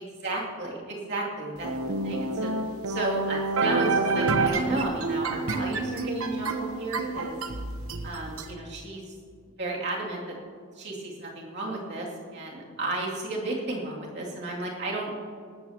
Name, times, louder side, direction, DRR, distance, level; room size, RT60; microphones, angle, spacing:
voice 1, 0.0-1.7 2.0-2.5 2.9-7.4 8.0-9.1 9.6-10.4 10.7-15.1, right 2 dB, 55° right, -4 dB, 2.8 m, -33 dB
sound 1, 1.6-8.5, right 3 dB, 80° right, 1.1 m, -28 dB
18.5 x 13.0 x 3.0 m, 2.2 s
head